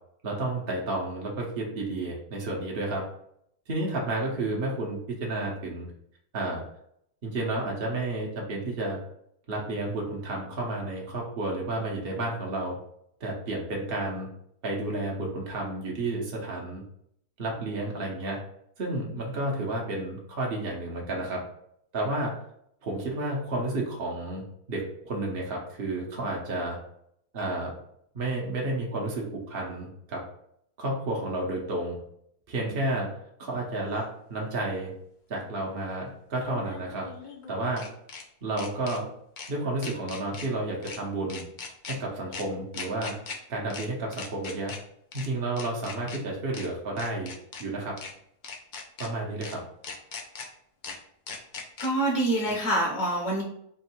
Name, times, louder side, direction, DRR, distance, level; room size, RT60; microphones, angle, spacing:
voice 1, 0.2-3.0 3.7-5.9 6.3-6.6 7.2-9.0 9.5-12.8 13.2-14.3 14.6-16.8 17.4-18.4 18.8-21.4 21.9-22.3 22.8-24.4 24.7-26.8 27.3-27.8 28.1-30.2 30.8-32.0 32.5-33.1 33.4-34.9 35.3-37.1 37.5-37.9 38.4-39.1 39.5-41.4 41.8-43.1 43.5-44.7 45.1-47.3 47.6-48.0 49.0-49.6 52.4-52.5, right 2 dB, 45° right, -2 dB, 0.9 m, -31 dB
sound 1, 33.9-34.0 36.4-38.2 38.6-39.0 39.4-39.5 39.8-40.5 40.8-41.0 41.3-42.0 42.3-42.4 42.7-43.4 43.7-43.9 44.1-44.8 45.1-45.3 45.6-46.2 46.5-46.7 47.0-47.6 48.0-48.1 48.4-49.1 49.4-49.5 49.8-50.5 50.8-51.0 51.3-51.9, left 5 dB, 85° left, 0.4 m, -39 dB
voice 2, 51.8-53.4, right 1 dB, 65° left, -3 dB, 1.3 m, -26 dB
3.6 x 2.5 x 4.2 m, 0.71 s
omnidirectional pair, 1.6 m